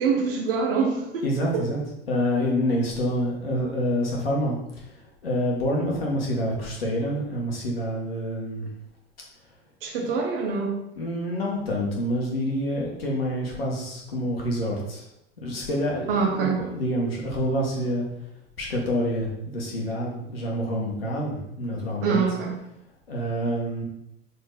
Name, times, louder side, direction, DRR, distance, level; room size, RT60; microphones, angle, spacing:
voice 1, 0.0-1.2 1.5-1.6 9.8-10.8 16.1-16.6 22.0-22.6, right 5 dB, 65° right, 1 dB, 1.6 m, -25 dB
voice 2, 1.2-1.8 2.1-4.9 5.2-8.7 11.0-15.0 15.4-18.0 18.6-22.2 23.1-23.8, equal, 70° left, -2 dB, 2.1 m, -27 dB
6.5 x 4.3 x 4.1 m, 0.82 s
figure-of-eight pair, 80°, 30 cm